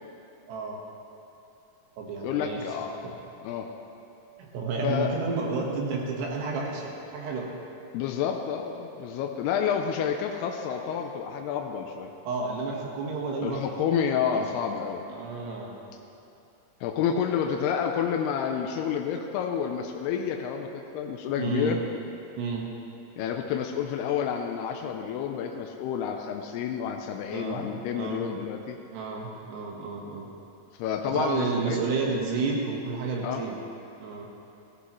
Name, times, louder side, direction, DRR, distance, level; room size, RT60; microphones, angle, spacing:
voice 1, 0.5-0.8 2.0-2.6 3.0-3.1 4.4-7.5 12.3-13.6 14.3-14.5 15.1-15.8 21.4-21.8 22.4-22.6 27.3-27.6 27.9-28.2 28.9-30.3 31.1-33.5 34.0-34.3, right 4 dB, 75° right, -1 dB, 3.6 m, -31 dB
voice 2, 2.2-3.0 3.4-3.7 4.8-5.1 7.9-12.1 13.4-15.0 16.8-21.8 23.2-28.8 30.8-31.9 33.2-33.4, left 8 dB, 80° left, 3 dB, 2.6 m, -29 dB
17.5 x 13.5 x 3.2 m, 2.8 s
omnidirectional pair, 4.9 m